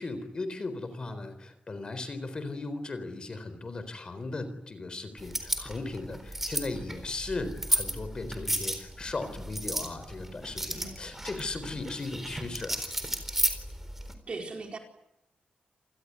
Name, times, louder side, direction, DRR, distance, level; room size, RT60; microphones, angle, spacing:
voice 1, 0.0-12.9, left 3 dB, 35° left, 11 dB, 4.0 m, -37 dB
sound 1, 5.2-14.1, right 1 dB, 10° right, 4.0 m, -34 dB
voice 2, 14.3-14.8, right 3 dB, 40° right, 3 dB, 4.8 m, -39 dB
28.5 x 20.0 x 9.6 m, 0.84 s
wide cardioid pair, 170°, 3 cm